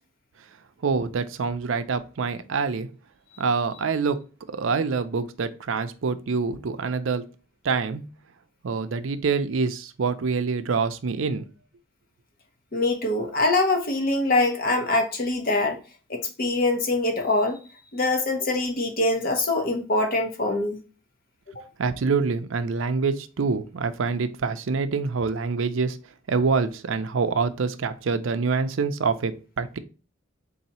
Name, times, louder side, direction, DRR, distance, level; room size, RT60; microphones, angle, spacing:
voice 1, 0.8-2.9 3.4-4.2 4.5-7.3 7.6-8.0 8.6-11.4 21.8-26.0 26.3-29.8, right 4 dB, 80° right, 0.5 m, -26 dB
voice 2, 12.7-15.8 16.1-17.6 17.9-20.8 21.6-21.7, left 2 dB, 45° left, 0.7 m, -24 dB
4.0 x 2.8 x 4.1 m
head